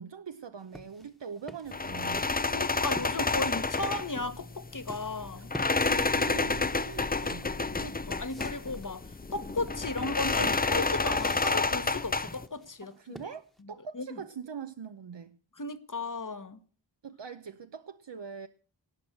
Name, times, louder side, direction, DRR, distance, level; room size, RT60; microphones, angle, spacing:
voice 1, 0.0-2.3 5.4-5.5 5.9-7.6 12.8-15.4 17.0-18.5, right 6 dB, 70° right, 0.8 m, -42 dB
sound 1, 0.6-4.2 4.9-5.1 5.5-13.6, equal, ahead, 1.3 m, -48 dB
sound 2, 1.7-12.5, left 3 dB, 20° left, 0.5 m, -30 dB
voice 2, 2.5-5.5 7.8-9.0 9.3-12.9 13.9-14.0 15.6-16.6, left 3 dB, 45° left, 1.4 m, -35 dB
18.5 x 6.2 x 7.8 m
wide cardioid pair, 45°, 45 cm